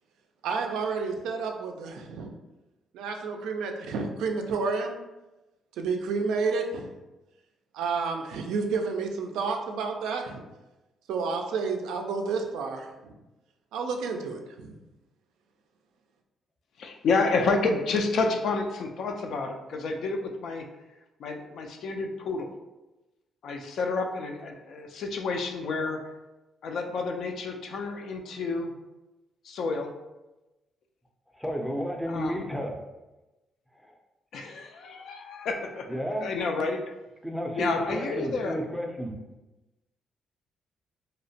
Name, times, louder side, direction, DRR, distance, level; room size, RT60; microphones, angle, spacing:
voice 1, 0.4-2.3 2.9-5.0 5.8-6.9 7.7-10.4 11.1-13.1 13.7-14.7, right 4 dB, 90° right, 4 dB, 0.3 m, -30 dB
voice 2, 16.8-20.7 21.2-22.5 23.4-26.1 26.6-28.7 29.4-29.9 32.1-32.4 34.3-36.8 37.5-38.6, left 3 dB, 65° left, 4 dB, 0.3 m, -30 dB
voice 3, 31.3-32.8 33.8-34.0 35.9-36.4 37.2-39.1, equal, ahead, 1 dB, 0.4 m, -32 dB
2.7 x 2.1 x 2.7 m, 1.0 s
cardioid pair, 90°, 0 cm